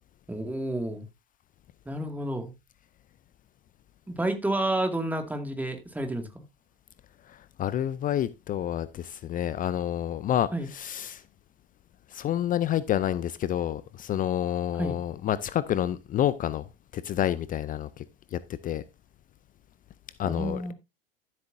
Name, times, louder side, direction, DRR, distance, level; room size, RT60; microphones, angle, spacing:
voice 1, 0.3-1.1 1.9-2.5 4.1-6.4 10.5-10.7 14.7-15.0 20.3-20.7, right 1 dB, 5° right, 2.1 m, -30 dB
voice 2, 7.3-11.2 12.1-16.7 16.9-18.0 18.3-18.8 20.2-20.7, left 11 dB, 30° left, 0.6 m, -29 dB
13.5 x 7.7 x 2.7 m
hypercardioid pair, 85°, 29 cm